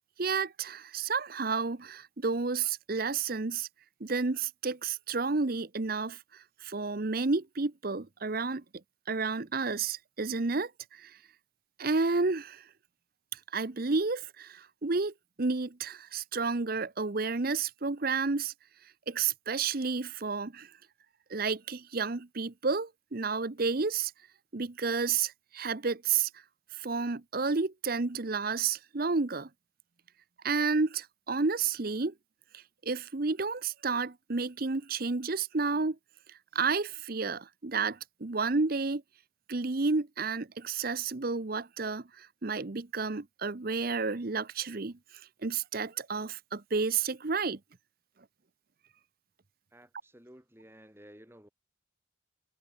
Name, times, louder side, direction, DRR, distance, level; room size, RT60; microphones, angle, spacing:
voice 1, 0.2-3.7 4.0-8.6 9.1-11.2 11.8-12.6 13.3-18.5 19.1-20.7 21.3-24.1 24.5-26.4 26.7-29.5 30.4-32.1 32.5-36.0 36.5-39.0 39.5-45.0 45.4-47.6, right 4 dB, 45° right, 0.8 m, -31 dB
voice 2, 49.7-51.5, equal, 10° right, 6.3 m, -54 dB
head